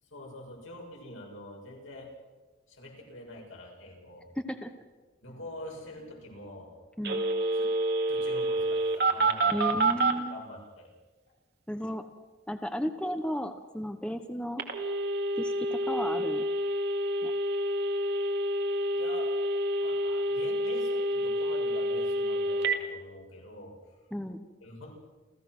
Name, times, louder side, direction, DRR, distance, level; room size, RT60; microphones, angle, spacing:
voice 1, 0.1-2.1 2.7-4.3 5.2-6.8 7.6-7.7 8.1-9.9 10.3-10.9 18.9-19.3 19.8-24.0 24.6-25.0, left 1 dB, 85° left, -1 dB, 6.7 m, -45 dB
voice 2, 4.4-4.7 7.0-7.2 9.5-10.4 11.7-12.1 12.5-14.6 15.4-16.4 17.2-17.3 24.1-24.5, equal, 5° left, 7 dB, 1.0 m, -34 dB
Telephone, 7.0-10.2 14.6-22.8, right 1 dB, 55° right, 2.3 m, -28 dB
29.5 x 15.0 x 6.2 m, 1.3 s
head